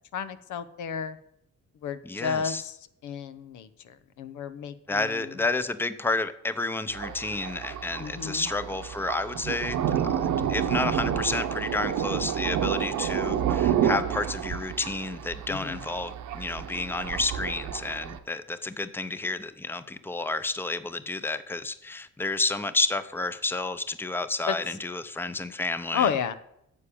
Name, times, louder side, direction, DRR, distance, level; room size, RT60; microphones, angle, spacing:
voice 1, 0.1-1.2 1.8-2.7 3.0-3.7 4.2-5.1 8.0-8.5 15.5-15.8 24.5-24.6 25.9-26.3, left 7 dB, 75° left, 11 dB, 1.0 m, -31 dB
voice 2, 2.0-2.6 4.9-26.1, left 3 dB, 5° left, 12 dB, 0.7 m, -30 dB
Thunder, 6.9-18.2, right 9 dB, 80° right, 1.1 m, -29 dB
9.6 x 7.3 x 8.6 m, 0.76 s
cardioid pair, 90°, 30 cm